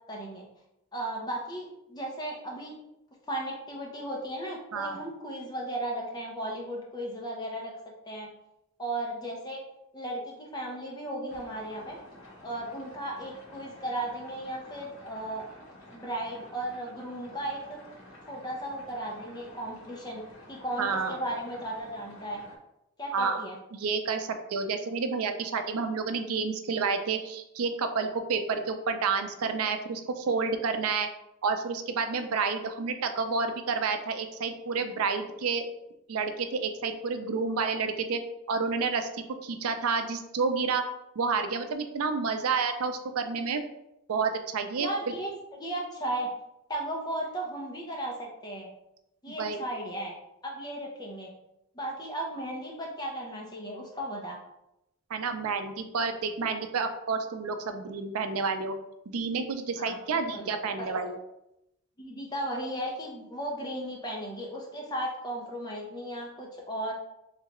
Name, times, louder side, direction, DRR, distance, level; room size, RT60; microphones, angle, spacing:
voice 1, 0.1-0.5 0.9-2.7 3.3-7.7 8.0-8.3 8.8-9.6 9.9-12.0 12.4-15.4 15.9-17.8 18.3-20.2 20.5-22.4 23.0-23.6 44.8-46.3 46.7-48.7 49.2-50.1 50.4-51.3 51.7-54.4 59.8-60.0 60.3-60.5 60.8-60.9 62.0-66.9, right 1 dB, 20° left, -2 dB, 0.8 m, -35 dB
voice 2, 4.7-5.0 20.8-21.2 23.1-23.4 23.7-31.1 31.4-35.6 36.1-38.2 38.5-40.9 41.2-43.6 44.1-45.1 49.4-49.6 55.1-58.7 59.1-61.2, right 5 dB, 85° right, 7 dB, 0.5 m, -30 dB
sound 1, 11.3-22.6, left 1 dB, 75° left, 1.1 m, -51 dB
3.7 x 3.3 x 3.0 m, 0.86 s
head